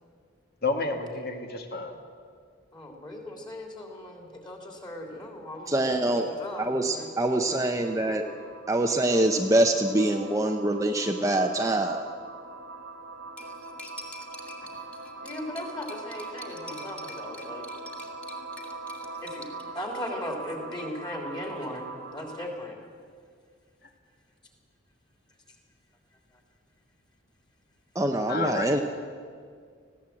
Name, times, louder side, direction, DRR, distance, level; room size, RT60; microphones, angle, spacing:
voice 1, 0.6-2.0 23.8-23.9 28.3-28.7, left 3 dB, 50° left, 5 dB, 2.1 m, -30 dB
voice 2, 2.7-5.9 6.1-7.2 8.0-8.5 15.2-17.7 19.2-19.5 19.7-22.8, left 1 dB, 20° left, 1 dB, 3.4 m, -38 dB
voice 3, 5.7-6.3 6.6-8.2 8.7-12.1 27.9-28.8, right 1 dB, 15° right, 3 dB, 0.8 m, -24 dB
sound 1, 6.3-22.7, right 3 dB, 65° right, 1.6 m, -42 dB
Cutlery silverware, 13.4-19.6, left 1 dB, 5° left, 2.0 m, -46 dB
19.5 x 15.5 x 8.6 m, 2.1 s
head